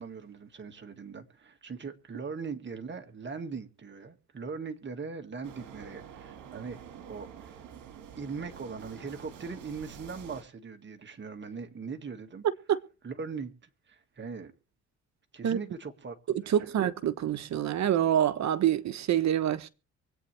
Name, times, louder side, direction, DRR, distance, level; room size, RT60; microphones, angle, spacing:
voice 1, 0.0-6.8 7.1-7.6 8.2-12.5 13.0-14.5 15.3-16.2 16.4-16.8, right 5 dB, 40° right, 1.9 m, -40 dB
sound 1, 5.4-10.4, right 8 dB, 80° right, 1.9 m, -48 dB
voice 2, 16.5-19.7, right 10 dB, 65° right, 1.1 m, -26 dB
24.0 x 8.8 x 3.3 m
cardioid pair, 90°, 30 cm